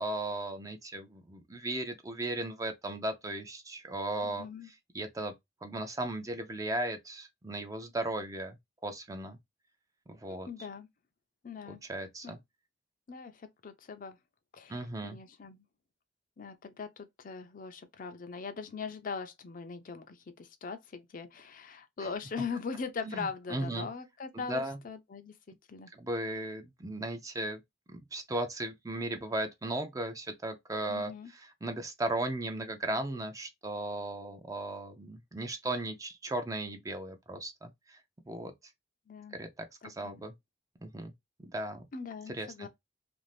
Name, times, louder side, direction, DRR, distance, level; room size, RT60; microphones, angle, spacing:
voice 1, 0.0-5.3 5.6-8.6 8.8-9.4 10.1-10.5 11.7-12.4 14.7-15.2 23.0-23.9 24.3-24.8 25.9-27.6 27.9-38.0 38.3-38.5 39.3-40.3 40.8-41.1 41.4-41.9 42.3-42.7, right 1 dB, 20° right, 0.4 m, -36 dB
voice 2, 4.2-4.7 10.3-10.9 11.4-11.8 12.2-12.4 13.1-14.2 14.5-15.6 16.4-25.9 30.9-31.3 39.1-39.4 39.8-40.2 41.9-42.7, left 5 dB, 45° left, 0.5 m, -41 dB
2.6 x 2.5 x 3.2 m
head